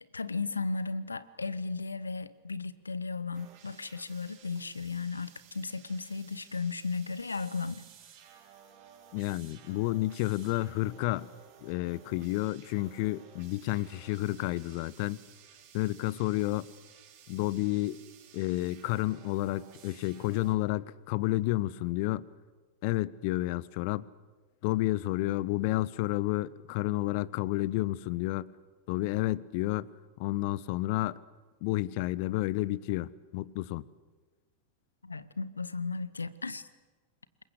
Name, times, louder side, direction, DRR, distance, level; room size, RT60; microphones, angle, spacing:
voice 1, 0.1-7.8 35.0-36.6, left 4 dB, 80° left, 1.0 m, -35 dB
sound 1, 3.3-20.5, right 8 dB, 45° right, 5.6 m, -56 dB
voice 2, 9.1-11.3 11.6-15.2 15.7-16.7 17.3-18.0 18.3-22.2 22.8-24.1 24.6-28.5 28.9-29.9 30.2-31.2 31.6-33.8, left 18 dB, 45° left, 0.8 m, -30 dB
27.0 x 22.0 x 8.0 m
figure-of-eight pair, 90°, 0 cm